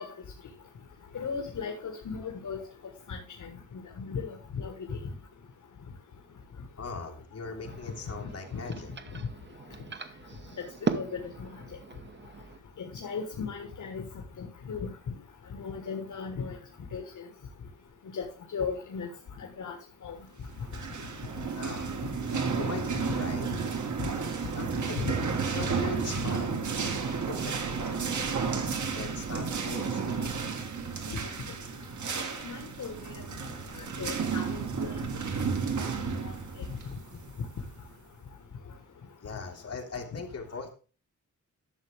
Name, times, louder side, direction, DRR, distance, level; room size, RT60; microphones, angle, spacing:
voice 1, 1.1-2.6 3.1-3.2 4.0-4.7 8.5-8.6 10.9-11.5 12.8-14.0 14.4-14.9 15.5-16.6 16.9-17.0 18.1-18.3 18.5-19.1 19.4-19.7 20.0-20.1 25.0-25.1 31.1-31.2 32.4-32.9 33.7-34.9 36.2-36.3, left 5 dB, 70° left, 3 dB, 1.6 m, -36 dB
voice 2, 6.8-8.9 21.5-21.9 22.5-23.5 24.5-26.5 27.3-27.8 28.9-30.0 39.2-40.7, left 4 dB, 50° left, 1 dB, 2.5 m, -40 dB
sound 1, 7.5-12.6, right 5 dB, 35° right, 0.9 m, -38 dB
sound 2, 20.5-38.0, right 5 dB, 65° right, 1.7 m, -32 dB
12.0 x 7.2 x 3.5 m, 0.36 s
wide cardioid pair, 170°, 31 cm